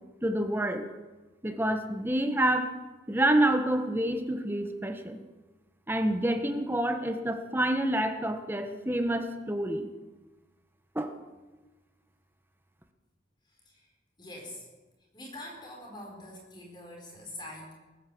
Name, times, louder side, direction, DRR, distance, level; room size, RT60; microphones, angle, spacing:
voice 1, 0.2-0.9 1.4-2.7 3.1-5.2 5.9-9.9 10.9-11.1, right 1 dB, 10° right, 7 dB, 1.0 m, -28 dB
voice 2, 13.5-13.9 14.2-14.7 15.1-17.7, left 1 dB, 25° left, 0 dB, 4.3 m, -44 dB
19.0 x 9.8 x 7.6 m, 1.2 s
head